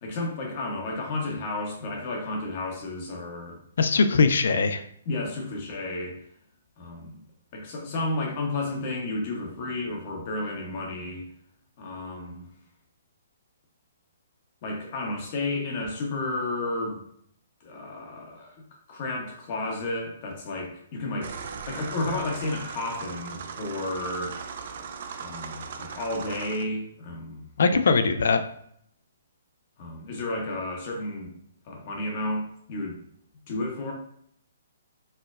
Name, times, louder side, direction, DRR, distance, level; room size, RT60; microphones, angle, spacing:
voice 1, 0.0-3.6 5.1-6.2 6.8-7.2 7.5-11.2 11.8-12.5 14.6-17.0 17.6-18.6 18.9-24.4 25.1-27.5 29.8-31.3 31.7-33.0 33.5-33.9, left 2 dB, 40° left, 0 dB, 0.8 m, -32 dB
voice 2, 3.8-4.8 27.6-28.4, left 4 dB, 70° left, 10 dB, 0.3 m, -21 dB
sound 1, 21.2-26.6, right 6 dB, 50° right, 0.3 m, -38 dB
4.3 x 2.1 x 2.4 m, 0.67 s
hypercardioid pair, 155°, 0 cm